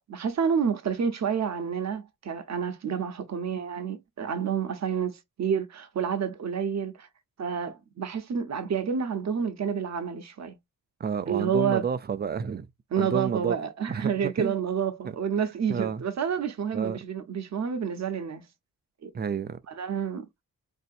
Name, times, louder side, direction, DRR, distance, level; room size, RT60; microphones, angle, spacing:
voice 1, 0.0-7.1 7.4-10.6 11.3-11.9 12.9-18.5 19.0-19.1 19.7-20.2, right 7 dB, 50° right, 0.8 m, -29 dB
voice 2, 11.0-12.7 13.0-13.6 13.9-14.5 15.7-16.0 16.7-17.0 19.1-19.6, right 6 dB, 30° right, 0.4 m, -30 dB
4.2 x 2.7 x 2.4 m
wide cardioid pair, 145°, 35 cm